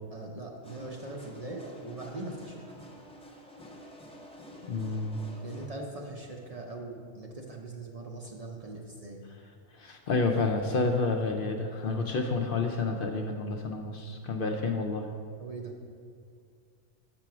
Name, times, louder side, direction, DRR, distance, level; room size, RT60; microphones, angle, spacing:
voice 1, 0.1-2.6 5.4-9.2 15.4-15.7, right 2 dB, 40° right, 0 dB, 0.6 m, -41 dB
sound 1, 0.6-5.7, equal, 5° left, 0.5 m, -49 dB
voice 2, 4.7-5.2 9.7-15.1, left 3 dB, 60° left, 3 dB, 0.6 m, -29 dB
6.0 x 5.8 x 5.9 m, 2.2 s
omnidirectional pair, 1.2 m